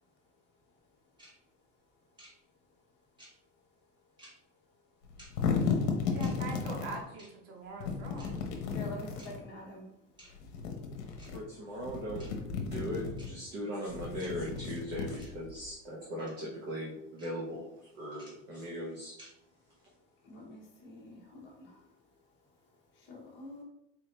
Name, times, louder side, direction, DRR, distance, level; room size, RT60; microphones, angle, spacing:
sound 1, 1.2-1.3 2.2-2.3 3.2-3.3 4.2-4.3 5.2-5.3 6.2-6.3 7.2-7.3 8.2-8.3 9.2-9.3 10.2-10.3 11.2-11.3 12.2-12.3 13.2-13.3 14.2-14.3 15.2-15.3 16.2-16.3 17.2-17.3 18.2-18.3 19.2-19.3, right 1 dB, 10° right, 1.1 m, -53 dB
sound 2, 5.0-7.0 7.8-9.4 10.3-11.4 11.8-13.3 13.9-15.7, left 5 dB, 60° left, 1.0 m, -34 dB
voice 1, 6.1-8.4, right 3 dB, 70° right, 1 dB, 1.2 m, -42 dB
voice 2, 8.7-9.8 20.3-21.7 23.1-23.6, left 1 dB, 30° left, -2 dB, 1.0 m, -46 dB
voice 3, 11.3-12.3 12.6-17.7 17.9-19.1, equal, 25° right, -3 dB, 0.6 m, -39 dB
4.2 x 2.6 x 3.1 m, 0.81 s
supercardioid pair, 160°, 38 cm